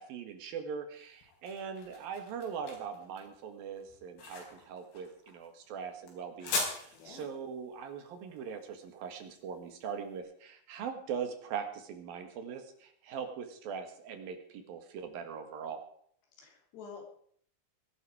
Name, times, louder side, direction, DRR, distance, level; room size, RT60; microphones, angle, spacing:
voice 1, 0.0-15.9, right 6 dB, 65° right, 7 dB, 3.3 m, -41 dB
sound 1, 0.9-10.0, left 3 dB, 70° left, 5.9 m, -41 dB
voice 2, 6.9-7.3 16.4-17.1, left 5 dB, 90° left, 1 dB, 5.4 m, -48 dB
20.0 x 12.0 x 5.0 m, 0.63 s
omnidirectional pair, 4.7 m